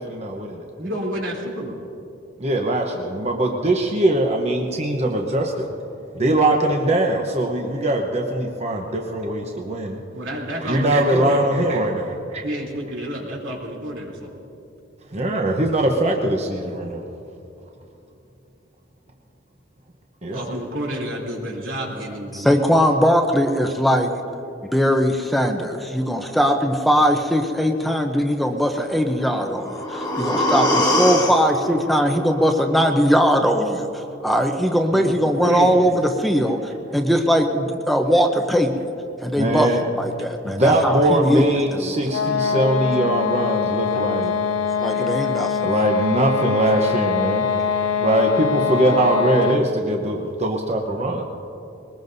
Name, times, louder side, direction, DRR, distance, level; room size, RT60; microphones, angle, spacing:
voice 1, 0.0-0.6 2.4-5.7 6.1-10.0 10.6-12.4 15.1-17.0 20.2-20.6 39.4-39.8 40.4-44.3 45.1-45.2 45.6-47.5 48.0-51.2, right 1 dB, 35° right, 1 dB, 0.9 m, -21 dB
voice 2, 0.8-1.8 10.1-11.7 12.4-14.3 20.3-22.6 34.9-35.8, equal, 80° right, -2 dB, 3.2 m, -29 dB
voice 3, 22.3-24.1 24.7-36.6 36.9-38.7 39.2-39.7 39.9-41.4 41.7-41.9 44.8-45.6, equal, ahead, 4 dB, 0.7 m, -20 dB
sound 1, 29.3-33.3 33.7-33.8, left 1 dB, 20° left, 1.6 m, -24 dB
sound 2, 42.1-49.8, left 7 dB, 85° left, 0.6 m, -23 dB
22.5 x 20.0 x 2.7 m, 2.8 s
head